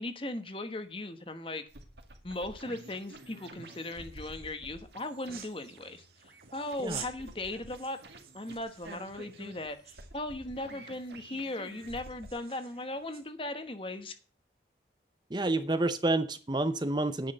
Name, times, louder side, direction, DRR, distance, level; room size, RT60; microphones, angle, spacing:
voice 1, 0.0-1.6 2.2-6.0 6.5-8.0 8.3-14.2, left 2 dB, 30° left, 9 dB, 1.1 m, -38 dB
sound 1, 1.7-12.3, right 2 dB, 75° right, 2.2 m, -50 dB
sound 2, 3.6-13.3, right 8 dB, 55° right, 2.3 m, -51 dB
voice 2, 15.3-17.3, right 2 dB, 25° right, 11 dB, 0.7 m, -29 dB
9.9 x 6.3 x 7.8 m, 0.38 s
head